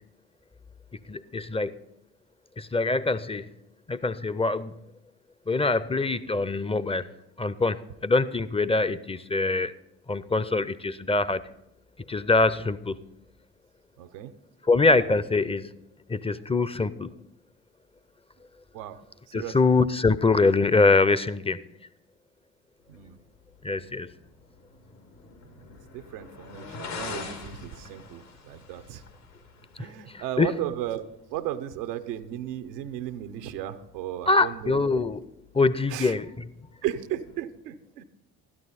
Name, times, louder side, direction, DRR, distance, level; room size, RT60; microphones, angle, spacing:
voice 1, 0.9-1.7 2.6-3.5 3.9-4.7 5.5-7.1 7.4-9.7 10.1-11.4 12.1-13.0 14.7-15.7 16.1-17.1 19.3-21.6 23.6-24.1 29.8-29.9 30.1-30.6 34.3-35.2 35.5-36.4, left 3 dB, 15° left, 17 dB, 0.5 m, -24 dB
voice 2, 14.0-14.3 18.7-19.0 19.3-19.7 22.9-23.2 25.7-29.0 29.8-31.0 31.3-35.0 35.9-36.1 36.8-38.0, right 12 dB, 85° right, 11 dB, 0.7 m, -35 dB
sound 1, 22.8-37.4, left 4 dB, 80° left, 1.9 m, -46 dB
13.0 x 11.0 x 4.2 m, 0.82 s
hypercardioid pair, 45°, 47 cm